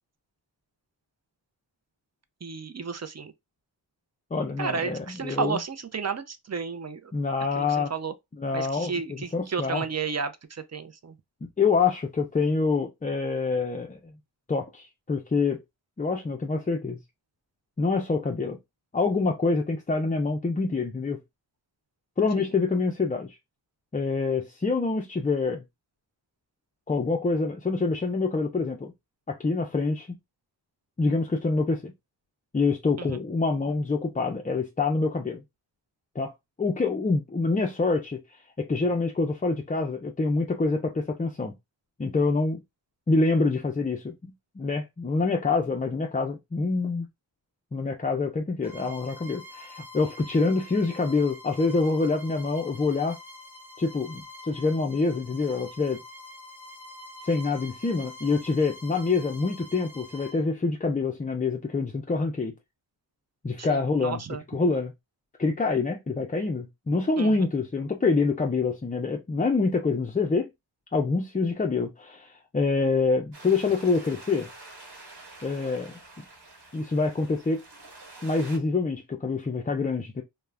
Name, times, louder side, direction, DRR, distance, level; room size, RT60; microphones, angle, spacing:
voice 1, 2.4-3.3 4.6-7.1 7.5-8.1 8.5-11.2 22.4-22.5 33.0-33.2 63.6-64.4 67.2-67.5, right 5 dB, 35° right, 0.5 m, -32 dB
voice 2, 4.3-5.6 7.1-7.9 8.4-9.8 11.4-14.1 14.5-15.6 16.0-17.0 17.8-18.6 18.9-21.2 22.2-23.4 23.9-25.6 26.9-28.9 29.3-30.1 31.0-31.9 32.5-35.4 36.2-36.3 36.6-41.5 42.0-42.6 43.1-47.1 47.7-53.2 53.8-56.0 57.2-62.5 63.4-64.2 64.5-64.9 65.4-70.5 70.9-74.5 75.4-76.3 76.7-77.6 78.2-80.2, left 4 dB, 20° left, 0.4 m, -26 dB
Bowed string instrument, 48.6-60.4, left 1 dB, 5° right, 0.7 m, -46 dB
sound 1, 73.3-78.6, right 2 dB, 60° right, 1.2 m, -47 dB
2.3 x 2.1 x 3.2 m
cardioid pair, 40°, 46 cm